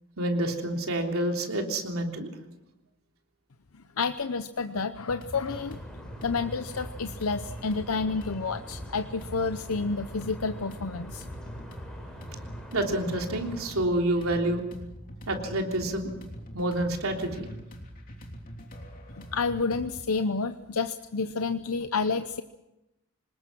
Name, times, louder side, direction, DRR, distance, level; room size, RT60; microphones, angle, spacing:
voice 1, 0.2-2.3 12.7-14.6 15.3-16.1 16.5-17.4, right 1 dB, 75° right, 2 dB, 3.4 m, -28 dB
voice 2, 4.0-5.8 6.2-11.2 19.2-22.4, left 4 dB, 80° left, 9 dB, 0.8 m, -30 dB
sound 1, 4.9-20.0, equal, 40° left, 3.3 m, -43 dB
sound 2, 5.5-13.7, equal, 5° left, 5.0 m, -44 dB
26.0 x 20.0 x 6.1 m, 0.95 s
head